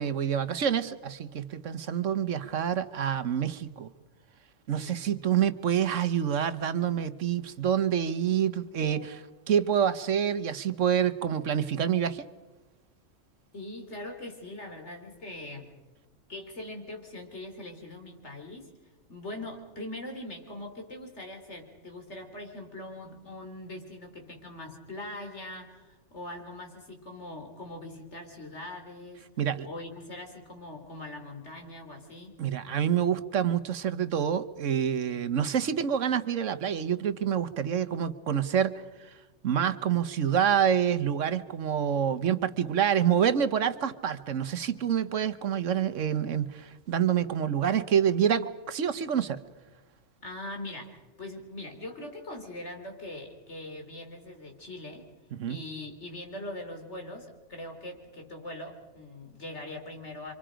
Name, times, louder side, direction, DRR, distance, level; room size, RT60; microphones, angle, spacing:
voice 1, 0.0-3.9 4.7-9.2 9.5-12.3 29.4-29.7 32.4-38.7 39.0-39.1 39.4-49.4 55.3-55.6, right 8 dB, 80° right, 12 dB, 1.4 m, -27 dB
voice 2, 8.8-9.2 13.5-15.7 16.3-18.7 19.1-29.2 29.6-32.3 50.2-55.1 55.5-60.3, left 1 dB, 65° left, 4 dB, 3.8 m, -42 dB
29.0 x 25.5 x 5.1 m, 1.2 s
omnidirectional pair, 1.3 m